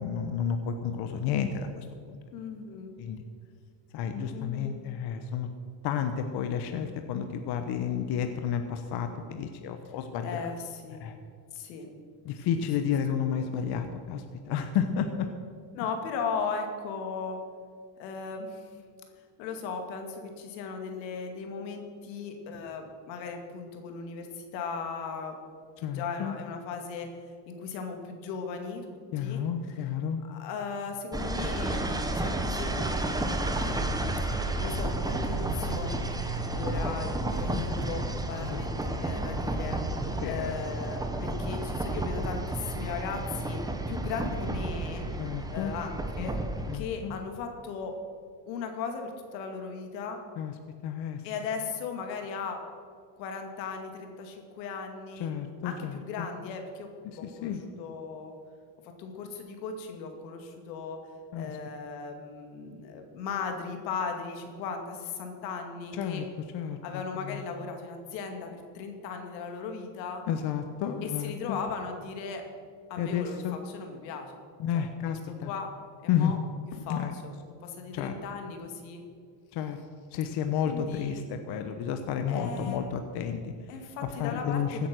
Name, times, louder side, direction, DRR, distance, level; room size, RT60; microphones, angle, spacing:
voice 1, 0.0-2.2 3.0-3.2 3.9-5.5 5.8-10.4 11.0-11.2 12.2-15.3 25.8-26.4 29.1-30.2 38.4-38.6 40.1-40.7 41.2-41.3 45.2-45.7 46.2-46.3 46.7-47.1 50.4-50.5 50.8-51.2 55.2-56.3 57.0-57.6 61.3-61.5 65.9-66.2 66.5-66.8 67.2-67.4 70.3-71.6 73.0-73.6 74.6-75.5 76.1-76.3 76.9-77.1 77.9-78.1 79.5-79.8 80.1-83.5 84.0-84.9, left 8 dB, 50° left, 7 dB, 1.1 m, -31 dB
voice 2, 2.3-2.9 4.3-4.7 10.2-11.0 11.5-11.9 12.5-12.9 15.7-17.4 18.0-18.7 19.4-25.4 25.8-27.1 27.5-29.9 30.2-31.8 32.1-33.9 34.6-43.6 43.9-45.1 45.5-46.4 46.7-47.9 48.5-50.2 51.2-52.6 53.2-55.3 55.6-58.3 59.0-61.0 61.4-66.2 66.8-70.2 71.0-72.4 72.9-74.4 74.7-75.7 76.0-76.4 76.8-79.0 80.7-81.2 82.3-82.9 83.7-84.9, left 5 dB, 85° left, 4 dB, 2.5 m, -37 dB
sound 1, 31.1-46.8, right 2 dB, 10° right, 1.1 m, -31 dB
16.0 x 9.4 x 6.2 m, 2.1 s
supercardioid pair, 125°, 49 cm